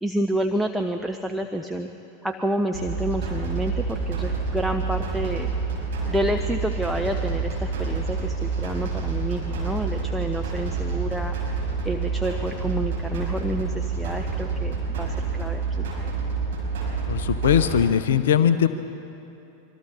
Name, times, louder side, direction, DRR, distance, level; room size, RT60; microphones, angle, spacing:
voice 1, 0.0-1.9 2.2-5.5 6.1-11.4 11.8-15.9, right 1 dB, ahead, 4 dB, 0.8 m, -29 dB
sound 1, 2.7-17.8, right 4 dB, 55° right, 5.8 m, -28 dB
voice 2, 17.1-18.7, left 8 dB, 60° left, 12 dB, 0.7 m, -20 dB
25.0 x 24.0 x 4.4 m, 2.8 s
figure-of-eight pair, 90°, 0 cm